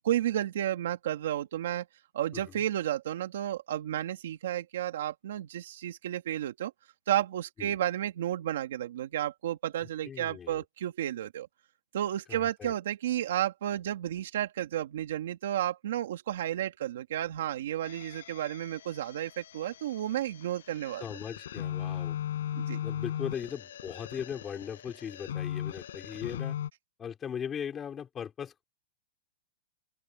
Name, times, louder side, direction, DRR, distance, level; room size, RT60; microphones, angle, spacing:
voice 1, 0.0-1.9 2.1-6.7 7.1-11.5 11.9-21.0 22.5-22.8, right 12 dB, 60° right, 2.0 m, -32 dB
voice 2, 10.1-10.6 12.3-12.7 21.0-22.2 22.8-26.6 27.0-28.6, left 8 dB, 15° left, 4.5 m, -39 dB
sound 1, 17.8-26.7, left 10 dB, 70° left, 5.4 m, -38 dB
open air
supercardioid pair, 175°, 0 cm